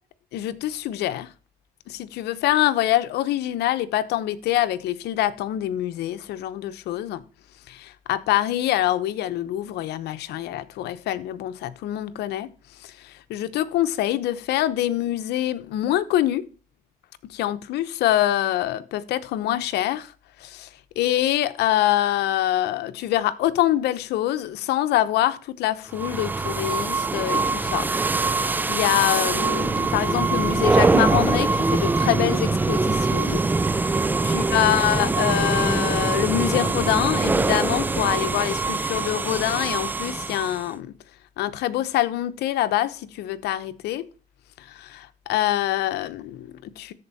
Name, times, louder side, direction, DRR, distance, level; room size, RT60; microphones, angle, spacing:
voice 1, 0.3-1.3 1.9-7.2 7.7-12.5 12.8-16.5 17.3-20.1 20.4-20.7 21.0-27.9 28.3-33.4 33.8-40.9 41.4-44.1 44.6-46.9, left 13 dB, 75° left, 0.9 m, -25 dB
sound 1, 25.9-40.7, right 3 dB, 10° right, 0.4 m, -23 dB
13.5 x 4.6 x 4.1 m
cardioid pair, 110°, 17 cm